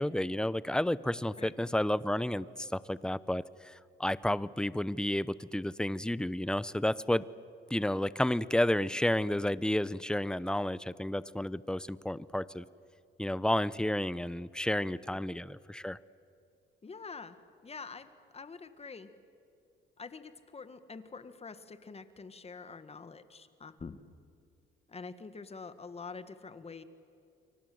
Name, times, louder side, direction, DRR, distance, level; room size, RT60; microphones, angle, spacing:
voice 1, 0.0-7.2 7.7-12.6 13.2-16.0, left 1 dB, 5° left, 18 dB, 0.7 m, -31 dB
voice 2, 16.8-17.4 17.6-19.1 20.0-24.0 24.9-26.8, left 4 dB, 30° left, 11 dB, 1.8 m, -46 dB
29.0 x 24.0 x 7.9 m, 2.5 s
cardioid pair, 90°, 20 cm